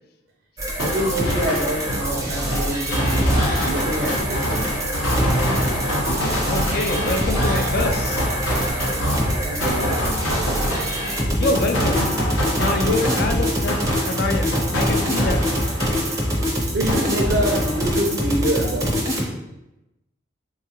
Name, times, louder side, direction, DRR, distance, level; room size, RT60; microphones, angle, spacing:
sound 1, 0.6-19.2, equal, 15° right, 0.5 m, -25 dB
sound 2, 0.8-16.5 16.9-18.2, equal, 90° left, 0.8 m, -25 dB
voice 1, 0.8-3.3 3.7-4.8 8.7-9.1 9.4-10.0 16.7-19.3, right 1 dB, 75° right, 0 dB, 0.5 m, -26 dB
voice 2, 6.5-8.3 11.4-12.1 12.5-15.5, left 2 dB, 50° left, 6 dB, 0.3 m, -25 dB
3.8 x 2.4 x 2.9 m, 0.92 s
head